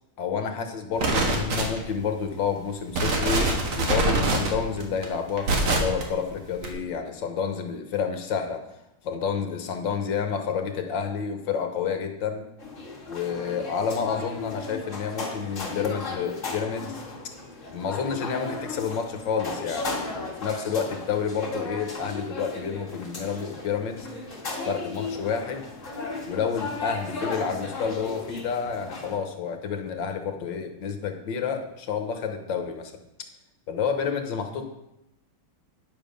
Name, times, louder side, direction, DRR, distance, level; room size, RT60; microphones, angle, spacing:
voice 1, 0.2-8.6 9.0-12.5 13.1-17.0 17.7-24.1 24.6-25.6 26.3-32.9 33.2-33.3 33.7-34.6, left 6 dB, 65° left, 6 dB, 1.5 m, -29 dB
sound 1, 1.0-2.0 2.5-2.6 2.9-6.0 6.6-6.7, right 2 dB, 80° right, 2.4 m, -24 dB
sound 2, 12.6-29.2, left 3 dB, 35° left, 2.2 m, -36 dB
9.9 x 7.3 x 5.1 m, 0.88 s
omnidirectional pair, 2.4 m